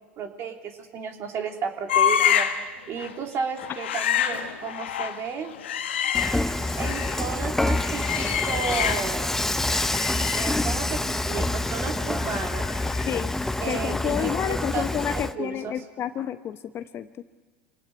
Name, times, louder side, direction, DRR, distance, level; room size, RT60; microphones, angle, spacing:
voice 1, 0.2-5.5 6.8-9.4 10.3-11.0 11.3-12.7 13.6-15.8, right 6 dB, 45° right, 3 dB, 3.1 m, -33 dB
sound 1, 1.9-2.7 3.0-3.2 3.6-7.2 7.6-9.3 9.5-13.3 13.6-13.8, left 9 dB, 85° left, 1.4 m, -28 dB
Dishes pots and pans / Frying (food), 6.1-15.3, left 2 dB, 5° left, 0.8 m, -27 dB
voice 2, 13.1-13.4 13.7-17.2, left 10 dB, 40° left, 11 dB, 0.9 m, -30 dB
26.0 x 18.0 x 9.6 m, 1.4 s
hypercardioid pair, 85°, 6 cm